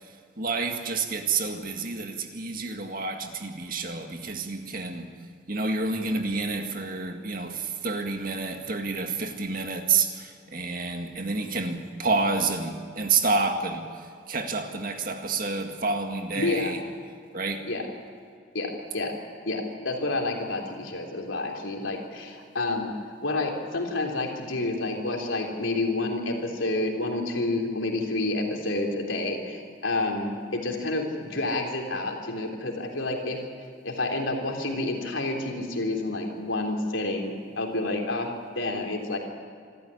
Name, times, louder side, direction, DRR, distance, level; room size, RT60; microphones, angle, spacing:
voice 1, 0.4-5.1 5.5-13.8 14.3-16.8 17.3-17.6, right 4 dB, 45° right, 5 dB, 2.0 m, -29 dB
voice 2, 16.4-16.7 17.7-17.8 18.5-19.1 19.4-23.0 23.2-33.4 33.8-39.2, left 2 dB, 85° left, 2 dB, 3.6 m, -29 dB
26.0 x 13.5 x 9.8 m, 2.3 s
head